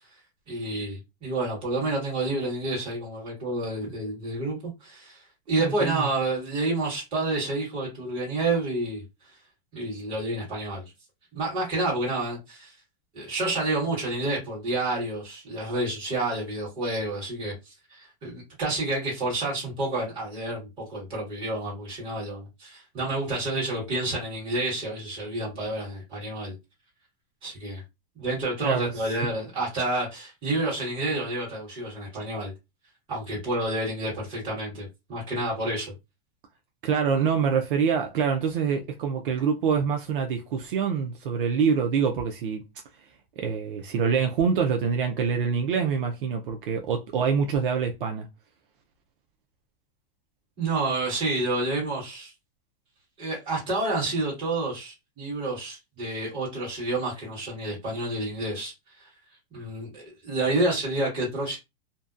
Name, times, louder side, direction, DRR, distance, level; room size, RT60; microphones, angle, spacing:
voice 1, 0.5-5.2 5.5-9.0 9.7-10.8 11.3-12.7 13.1-26.5 27.4-27.8 28.2-32.5 33.1-35.9 50.6-52.3 53.2-58.7 59.0-59.1 59.5-61.6, right 2 dB, 15° right, 1.4 m, -29 dB
voice 2, 5.6-6.1 28.6-29.2 36.8-42.6 43.4-48.3, right 6 dB, 60° right, 0.5 m, -25 dB
2.6 x 2.1 x 2.3 m
supercardioid pair, 175°, 30 cm